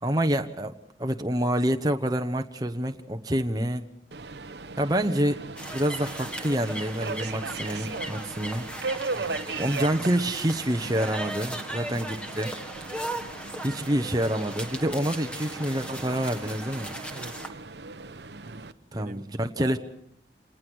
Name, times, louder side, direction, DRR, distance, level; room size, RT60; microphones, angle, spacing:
voice 1, 0.0-0.7 1.0-3.9 4.8-5.4 5.7-8.7 9.6-12.5 13.6-16.9 18.9-19.8, right 1 dB, 20° right, 6 dB, 1.1 m, -27 dB
Subway metro underground, 4.1-18.7, right 3 dB, 75° right, 1.0 m, -38 dB
sound 1, 5.6-17.5, right 1 dB, 5° left, 1.7 m, -38 dB
voice 2, 9.1-9.6 11.5-11.6 17.1-17.5 18.4-19.8, right 2 dB, 50° right, 10 dB, 1.1 m, -44 dB
27.5 x 19.5 x 6.3 m, 0.70 s
head